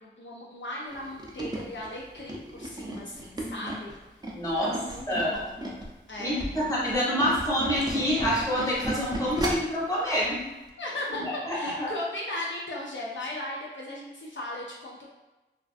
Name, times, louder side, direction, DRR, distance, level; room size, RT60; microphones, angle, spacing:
voice 1, 0.0-3.9 4.5-5.6 6.1-6.4 10.8-15.1, left 1 dB, 70° left, -4 dB, 0.4 m, -37 dB
Tools, 0.9-5.9 6.3-9.8 10.2-10.4 10.7-10.8, right 1 dB, 20° right, 0.4 m, -35 dB
voice 2, 3.4-3.7 4.3-4.7 5.1-5.3 6.2-10.4 11.5-11.9, equal, 15° left, -7 dB, 0.9 m, -27 dB
2.5 x 2.3 x 2.3 m, 1.1 s
wide cardioid pair, 65°, 20 cm